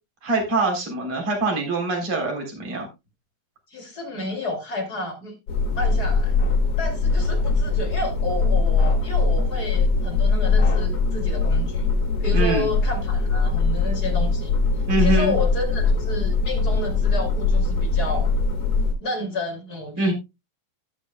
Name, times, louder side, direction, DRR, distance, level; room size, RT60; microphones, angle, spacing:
voice 1, 0.2-2.9 12.3-12.7 14.9-15.3 20.0-20.1, right 3 dB, 40° right, 4.3 m, -23 dB
voice 2, 3.7-5.4 5.7-6.4 6.8-11.9 12.2-14.6 15.0-18.3 19.0-20.1, left 2 dB, 30° left, 2.7 m, -31 dB
sound 1, 5.5-18.9, left 4 dB, 60° left, 3.3 m, -21 dB
17.5 x 6.3 x 2.3 m
omnidirectional pair, 4.0 m